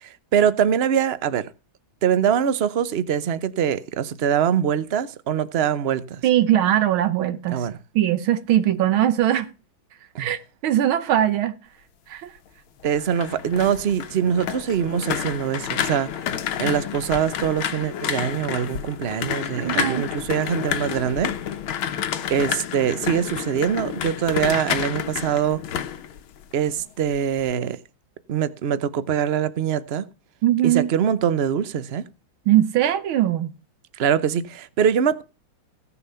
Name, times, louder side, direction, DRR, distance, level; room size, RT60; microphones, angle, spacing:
voice 1, 0.0-1.5 2.0-6.2 7.5-7.8 10.1-10.3 12.8-16.1 16.6-21.3 22.3-25.6 26.5-27.8 28.3-30.0 30.6-32.1 33.9-35.2, right 8 dB, 55° right, 0.7 m, -23 dB
voice 2, 6.2-7.7 8.0-9.5 10.2-11.6 12.1-12.3 19.6-20.0 30.4-30.9 32.5-33.5, right 12 dB, 85° right, 1.8 m, -20 dB
sound 1, 12.8-26.8 27.1-27.5, left 9 dB, 90° left, 1.8 m, -29 dB
16.5 x 6.9 x 5.6 m
omnidirectional pair, 2.2 m